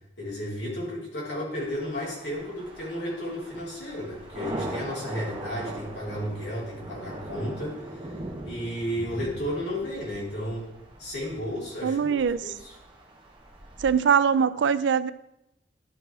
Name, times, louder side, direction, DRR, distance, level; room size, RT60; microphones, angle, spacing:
voice 1, 0.2-8.2 8.4-10.6 11.0-12.1 12.4-12.7, equal, 65° left, -5 dB, 3.4 m, -33 dB
sound 1, 1.6-14.4, right 1 dB, 30° right, 1.1 m, -41 dB
voice 2, 11.8-12.5 13.8-15.1, right 7 dB, 80° right, 16 dB, 0.4 m, -22 dB
11.0 x 4.0 x 4.6 m, 0.87 s
head